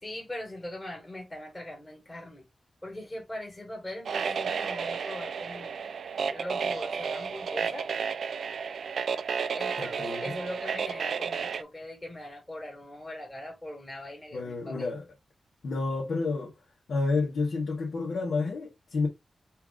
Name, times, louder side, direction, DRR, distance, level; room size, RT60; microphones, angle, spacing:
voice 1, 0.0-2.4 2.8-5.7 6.3-7.9 9.5-14.9, left 1 dB, 20° left, 2.0 m, -41 dB
sound 1, 4.1-11.6, right 6 dB, 80° right, 0.3 m, -32 dB
voice 2, 9.8-10.3 14.3-15.0 15.6-16.5 16.9-19.1, left 3 dB, 70° left, 1.5 m, -30 dB
4.6 x 2.9 x 3.8 m
wide cardioid pair, 140°, 0 cm